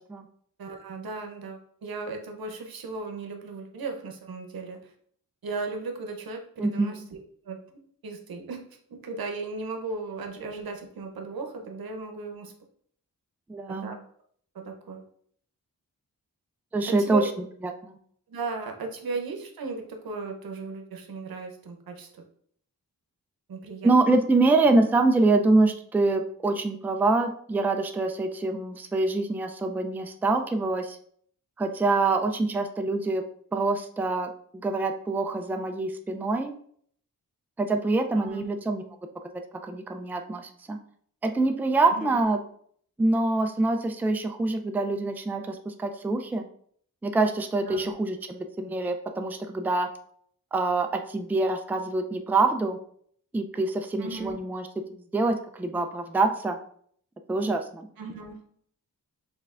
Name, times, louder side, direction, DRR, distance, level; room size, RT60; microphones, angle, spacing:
voice 1, 0.6-4.9 5.4-7.2 7.4-7.6 8.0-8.6 8.9-12.5 13.7-14.0 14.5-15.0 16.9-17.3 18.3-22.2 23.5-24.2 38.1-38.4 41.9-42.2 47.7-47.9 54.0-54.4 58.0-58.4, right 3 dB, 80° right, 4 dB, 0.8 m, -36 dB
voice 2, 6.6-7.1 13.5-14.0 16.7-17.2 17.6-18.0 23.8-31.0 31.6-33.2 33.5-34.3 34.6-36.5 37.6-38.8 39.6-40.8 41.2-42.4 43.0-46.5 47.0-49.9 50.5-52.8 53.3-56.6 57.3-57.9, right 3 dB, 5° right, 5 dB, 0.3 m, -25 dB
5.4 x 3.4 x 2.4 m, 0.62 s
cardioid pair, 70°, 35 cm